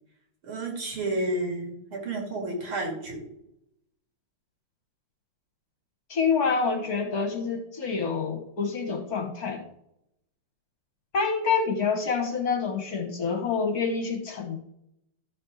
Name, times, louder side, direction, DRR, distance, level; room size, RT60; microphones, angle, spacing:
voice 1, 0.4-3.2, right 2 dB, 75° right, 1 dB, 3.2 m, -31 dB
voice 2, 6.1-9.7 11.1-14.6, left 5 dB, 50° left, 2 dB, 1.5 m, -27 dB
12.0 x 4.2 x 6.3 m, 0.79 s
omnidirectional pair, 2.3 m